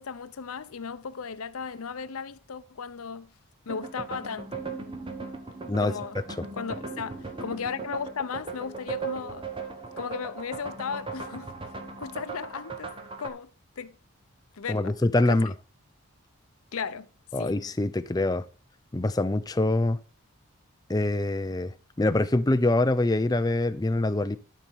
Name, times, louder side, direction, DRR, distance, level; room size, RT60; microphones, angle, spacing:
voice 1, 0.0-3.3 3.7-4.6 5.8-6.2 6.5-9.5 10.0-11.5 12.0-12.9 13.2-13.5 13.8-13.9 14.6-15.0 15.3-15.4 16.7-17.1 17.4-17.6, left 6 dB, 75° left, 0.6 m, -35 dB
sound 1, 3.7-13.3, right 4 dB, 25° right, 1.0 m, -38 dB
voice 2, 14.7-15.5 17.3-18.4 18.9-20.0 20.9-24.4, left 2 dB, 15° left, 0.4 m, -24 dB
12.0 x 5.5 x 4.6 m
head